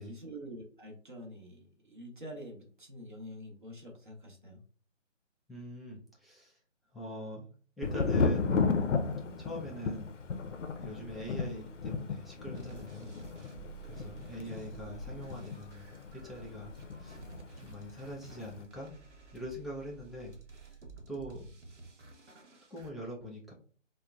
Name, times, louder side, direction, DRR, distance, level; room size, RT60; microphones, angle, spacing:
voice 1, 0.0-4.6 14.3-14.7, equal, 40° right, 0 dB, 0.9 m, -47 dB
voice 2, 5.5-6.6 6.9-7.5 7.8-8.6 9.4-10.1 10.8-13.1 13.9-16.7 17.0-17.2 17.6-18.9 19.3-20.3 21.1-21.5 22.7-23.5, equal, ahead, -4 dB, 0.3 m, -43 dB
Thunder, 7.8-17.5 17.7-18.4, left 4 dB, 70° left, 0.5 m, -34 dB
sound 1, 12.5-22.9, right 3 dB, 65° right, 0.9 m, -51 dB
3.8 x 2.1 x 2.3 m, 0.42 s
figure-of-eight pair, 165°, 38 cm